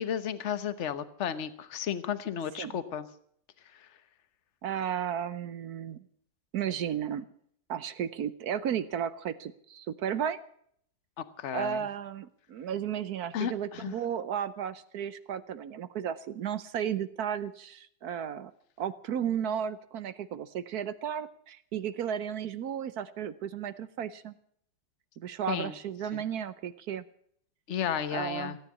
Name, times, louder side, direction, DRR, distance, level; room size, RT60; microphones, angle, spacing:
voice 1, 0.0-3.1 11.2-11.8 13.3-13.9 25.5-25.7 26.1-26.2 27.7-28.6, left 9 dB, 45° left, 12 dB, 1.2 m, -33 dB
voice 2, 4.6-6.1 6.5-7.2 7.7-10.4 11.5-18.5 18.8-24.3 25.2-27.0 28.1-28.6, right 9 dB, 65° right, 14 dB, 1.2 m, -34 dB
16.5 x 9.8 x 8.3 m, 0.64 s
omnidirectional pair, 1.9 m